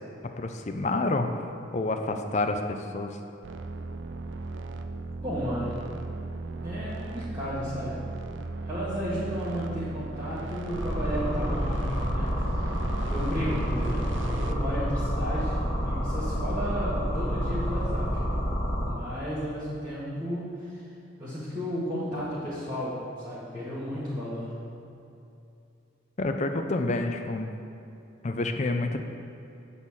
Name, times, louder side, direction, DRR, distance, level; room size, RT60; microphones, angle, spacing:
voice 1, 0.4-1.3 1.7-3.2 26.2-27.5 28.2-29.0, left 2 dB, 40° left, 5 dB, 0.5 m, -28 dB
sound 1, 3.4-14.5, right 3 dB, 80° right, 0.5 m, -37 dB
voice 2, 5.2-5.9 6.6-8.1 8.7-12.7 13.1-18.1 18.8-20.8 21.2-24.6, equal, 20° right, -12 dB, 1.8 m, -33 dB
sound 2, 10.7-18.9, equal, 20° left, 2.0 m, -28 dB
8.5 x 4.2 x 7.1 m, 2.7 s
head